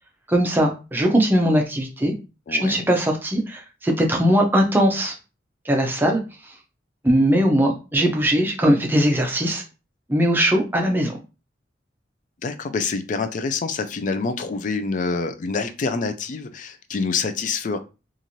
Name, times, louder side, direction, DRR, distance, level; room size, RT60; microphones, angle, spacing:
voice 1, 0.3-2.1 2.5-5.2 5.7-6.2 7.0-9.6 10.1-11.1, equal, 10° right, 1 dB, 0.6 m, -20 dB
voice 2, 2.5-2.9 12.4-17.8, left 4 dB, 45° left, 9 dB, 0.3 m, -26 dB
3.0 x 2.5 x 2.6 m, 0.30 s
head